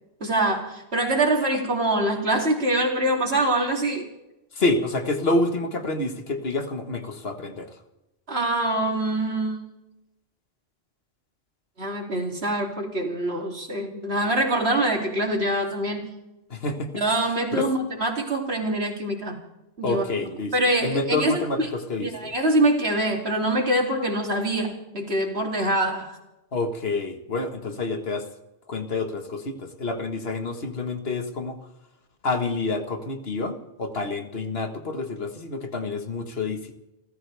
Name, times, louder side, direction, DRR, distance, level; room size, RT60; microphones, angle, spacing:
voice 1, 0.2-4.1 8.3-9.6 11.8-16.1 16.9-19.4 19.8-20.0 20.5-21.7 22.0-26.2, right 1 dB, 75° right, 1 dB, 3.2 m, -24 dB
voice 2, 4.5-7.8 16.5-17.7 19.8-20.5 20.8-22.3 26.5-28.3 28.7-31.6 32.2-36.8, left 2 dB, 65° left, 6 dB, 1.8 m, -28 dB
30.0 x 14.0 x 3.5 m, 0.94 s
omnidirectional pair, 1.1 m